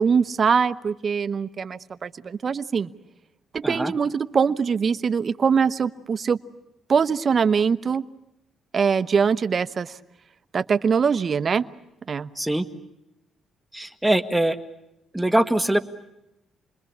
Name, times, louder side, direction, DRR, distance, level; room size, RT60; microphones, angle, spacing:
voice 1, 0.0-2.9 3.5-6.4 6.9-8.0 8.7-10.0 10.5-11.7 12.1-12.3, right 6 dB, 45° right, 15 dB, 1.0 m, -22 dB
voice 2, 12.3-12.7 13.7-14.6 15.1-15.8, right 1 dB, 5° right, 10 dB, 1.7 m, -22 dB
29.0 x 21.5 x 8.7 m, 0.89 s
cardioid pair, 90°, 0 cm